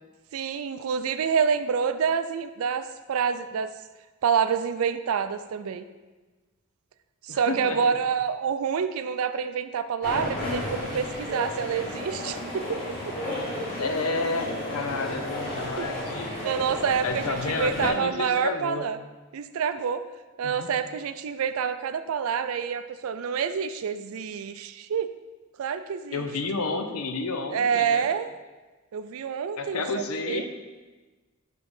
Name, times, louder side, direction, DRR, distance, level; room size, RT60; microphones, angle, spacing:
voice 1, 0.3-3.7 4.2-5.8 7.2-12.8 15.8-15.9 16.4-19.0 19.3-20.0 20.4-25.1 25.6-26.3 27.5-28.3 28.9-30.5, right 7 dB, 70° right, 11 dB, 0.4 m, -27 dB
voice 2, 7.3-7.8 13.8-16.4 17.0-18.9 20.4-20.7 26.1-28.1 29.6-30.5, left 3 dB, 80° left, 6 dB, 0.6 m, -30 dB
sound 1, 10.0-17.9, left 1 dB, 40° left, 1.9 m, -33 dB
5.9 x 3.7 x 5.3 m, 1.3 s
head